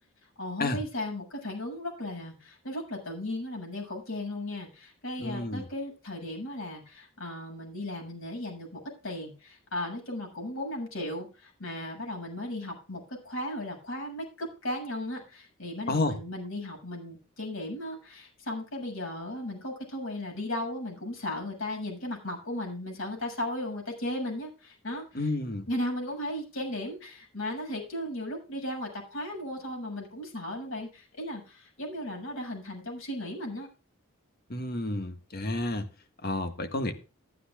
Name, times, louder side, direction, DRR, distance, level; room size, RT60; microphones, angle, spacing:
voice 1, 0.4-25.3 25.7-33.7, left 1 dB, 70° left, 7.3 m, -36 dB
voice 2, 5.2-5.7 15.9-16.2 25.1-25.7 34.5-35.9 36.2-36.9, left 2 dB, 45° left, 1.7 m, -30 dB
14.5 x 13.5 x 2.4 m
head